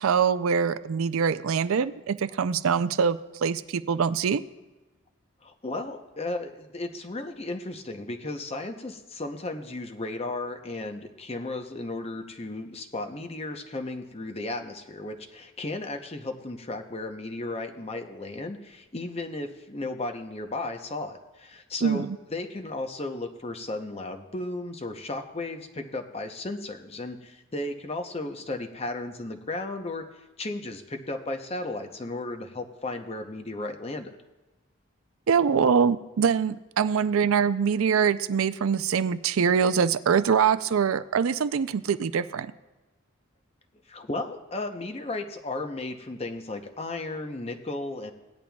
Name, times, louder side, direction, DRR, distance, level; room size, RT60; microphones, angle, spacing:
voice 1, 0.0-4.4 21.8-22.2 35.3-42.5, right 6 dB, 75° right, 13 dB, 0.4 m, -24 dB
voice 2, 5.4-34.2 43.9-48.1, left 2 dB, 30° left, 5 dB, 0.7 m, -35 dB
18.0 x 10.5 x 2.3 m, 1.1 s
head